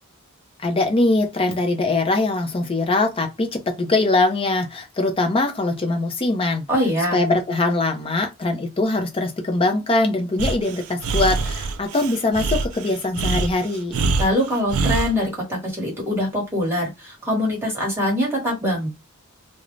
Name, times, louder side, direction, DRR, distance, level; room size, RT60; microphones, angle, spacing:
voice 1, 0.6-6.7 7.1-14.0, left 2 dB, 25° left, 0.5 m, -22 dB
voice 2, 6.7-7.2 14.2-18.9, left 1 dB, 10° right, 1.1 m, -23 dB
Breathing, 10.4-15.1, right 3 dB, 70° right, 0.4 m, -24 dB
2.5 x 2.0 x 3.1 m
head